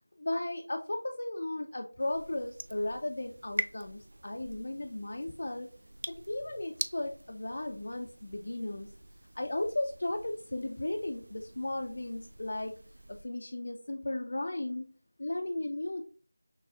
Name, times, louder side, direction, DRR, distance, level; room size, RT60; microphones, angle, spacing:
voice 1, 0.2-5.7 6.3-8.9 9.3-12.8 13.1-14.9 15.2-16.0, left 1 dB, 55° left, 3 dB, 0.4 m, -35 dB
sound 1, 2.0-13.2, right 1 dB, 60° right, 0.3 m, -44 dB
5.7 x 2.3 x 2.4 m, 0.38 s
figure-of-eight pair, 170°, 0 cm